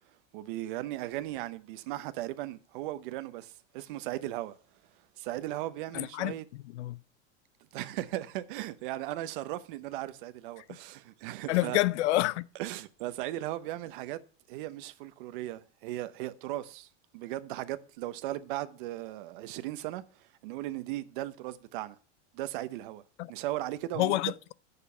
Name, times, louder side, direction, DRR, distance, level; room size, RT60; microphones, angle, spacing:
voice 1, 0.3-4.5 5.2-6.4 7.7-11.8 12.6-14.2 14.5-22.0 22.3-23.0 23.3-24.2, right 15 dB, 50° right, 0.8 m, -37 dB
voice 2, 5.9-6.3 6.7-7.0 10.7-10.8 11.5-12.4 23.2-23.3 24.0-24.5, left 17 dB, 80° left, 0.6 m, -28 dB
9.1 x 6.8 x 5.6 m
supercardioid pair, 175°, 34 cm